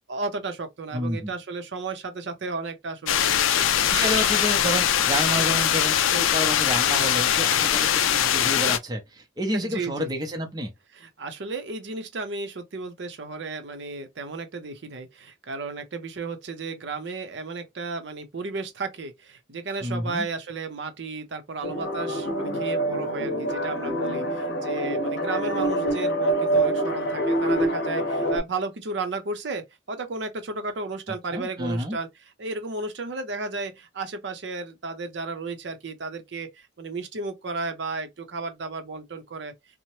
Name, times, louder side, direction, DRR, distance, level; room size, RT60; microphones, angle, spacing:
voice 1, 0.1-3.9 9.5-10.1 10.9-39.5, right 3 dB, 65° right, 0.6 m, -34 dB
voice 2, 0.9-1.3 3.9-10.7 19.8-20.3 31.3-32.0, equal, 20° right, 0.5 m, -29 dB
sound 1, 3.1-8.8, left 10 dB, 90° left, 0.4 m, -22 dB
sound 2, 21.6-28.4, right 1 dB, 60° left, 0.8 m, -26 dB
2.7 x 2.1 x 3.0 m
head